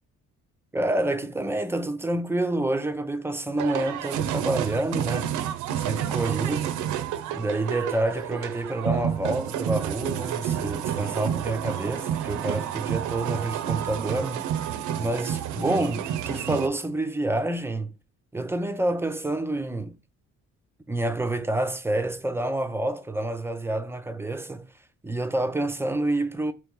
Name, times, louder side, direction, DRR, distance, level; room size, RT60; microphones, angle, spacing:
voice 1, 0.7-5.3 5.9-6.8 7.3-14.5 15.0-17.9 18.3-20.0 20.9-24.6 25.0-26.5, right 2 dB, 10° right, 0.4 m, -28 dB
sound 1, 3.6-16.7, right 10 dB, 80° right, 0.5 m, -30 dB
3.1 x 3.0 x 3.6 m
cardioid pair, 90°, 30 cm